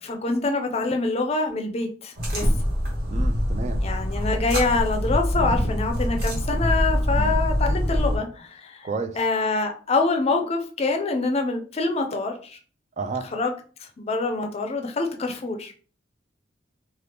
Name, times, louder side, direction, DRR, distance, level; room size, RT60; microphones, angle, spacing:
voice 1, 0.0-2.5 3.8-8.9 9.2-12.6 13.3-13.5 14.0-15.7, left 3 dB, 35° left, 0.5 m, -25 dB
sound 1, 2.2-8.2, equal, 55° right, 1.1 m, -24 dB
voice 2, 3.1-3.8 7.1-7.3 8.8-9.2 13.0-13.3, right 3 dB, 40° right, 0.3 m, -31 dB
2.8 x 2.4 x 3.3 m
head